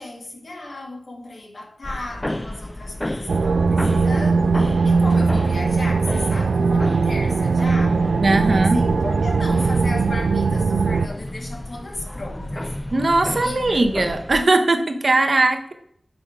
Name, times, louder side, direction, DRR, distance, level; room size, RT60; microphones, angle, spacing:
voice 1, 0.0-8.0 8.4-12.7 13.3-13.9, left 2 dB, 65° left, 1.5 m, -35 dB
sound 1, 1.8-14.4, left 1 dB, 15° left, 0.3 m, -33 dB
sound 2, 3.3-11.1, right 4 dB, 85° right, 0.3 m, -19 dB
voice 2, 8.2-8.8 12.9-15.7, right 2 dB, 55° right, 0.8 m, -19 dB
6.0 x 3.5 x 4.8 m
wide cardioid pair, 65°, 0 cm